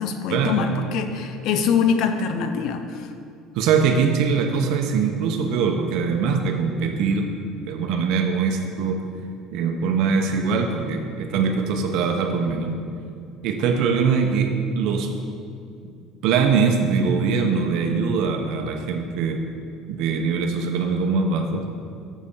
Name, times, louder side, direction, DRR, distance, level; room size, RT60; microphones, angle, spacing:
voice 1, 0.0-3.1, left 6 dB, 65° left, 7 dB, 0.6 m, -24 dB
voice 2, 3.5-7.3 7.7-9.0 9.5-12.7 13.4-15.1 16.2-19.4 19.9-21.7, right 5 dB, 70° right, 4 dB, 0.7 m, -22 dB
7.4 x 6.6 x 3.7 m, 2.4 s
cardioid pair, 125°, 0 cm